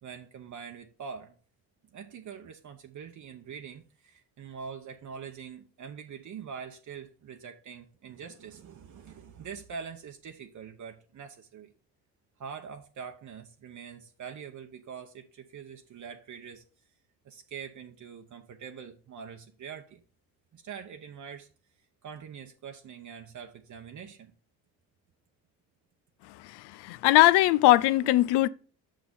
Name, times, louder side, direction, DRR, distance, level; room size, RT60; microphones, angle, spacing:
voice 1, 0.0-1.3 1.9-11.7 12.4-16.6 17.2-20.0 20.5-21.5 22.0-24.3, right 6 dB, 50° right, 0.8 m, -44 dB
voice 2, 26.2-28.5, left 16 dB, 85° left, 0.5 m, -21 dB
6.5 x 5.9 x 5.3 m
cardioid pair, 85°, 39 cm